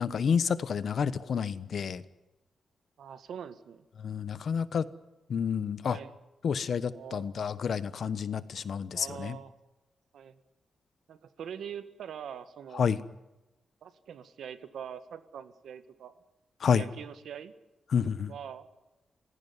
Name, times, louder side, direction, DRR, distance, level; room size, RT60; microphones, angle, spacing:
voice 1, 0.0-2.0 4.0-4.8 5.3-6.0 6.4-9.4 12.7-13.0 16.6-16.8 17.9-18.3, left 6 dB, 60° left, 14 dB, 1.2 m, -29 dB
voice 2, 3.0-3.9 5.9-6.1 6.9-7.3 8.9-9.5 10.1-10.4 11.1-12.9 13.8-16.2 16.7-17.5 18.3-18.7, right 8 dB, 90° right, 11 dB, 1.8 m, -43 dB
30.0 x 16.5 x 9.9 m, 1.0 s
wide cardioid pair, 140°, 0 cm